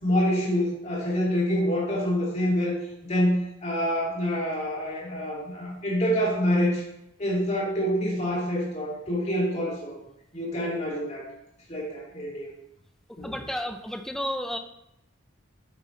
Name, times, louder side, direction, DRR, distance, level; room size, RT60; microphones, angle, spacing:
voice 1, 0.0-2.8 3.0-6.8 7.2-10.0 10.3-11.3 11.7-12.5 13.2-13.3, equal, 35° left, -4 dB, 2.5 m, -26 dB
voice 2, 13.2-14.6, equal, ahead, 7 dB, 0.5 m, -32 dB
9.2 x 7.8 x 3.2 m, 0.81 s
head